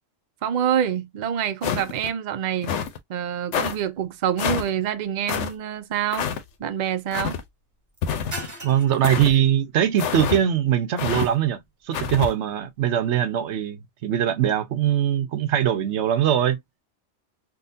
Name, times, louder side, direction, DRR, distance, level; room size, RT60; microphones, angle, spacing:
voice 1, 0.4-2.7 3.1-6.3 6.6-7.4, right 9 dB, 55° right, 0.5 m, -26 dB
sound 1, 1.6-2.1 2.6-3.0 3.5-3.8 4.4-4.7 5.3-5.5 6.1-6.4 7.1-7.4 8.0-8.5 9.0-9.3 10.0-10.4 11.0-11.3 11.9-12.3, left 8 dB, 90° left, 1.0 m, -27 dB
sound 2, 3.5-13.6, right 1 dB, 15° right, 1.1 m, -46 dB
voice 2, 8.6-16.6, right 10 dB, 80° right, 1.0 m, -22 dB
3.8 x 2.4 x 2.5 m
omnidirectional pair, 1.2 m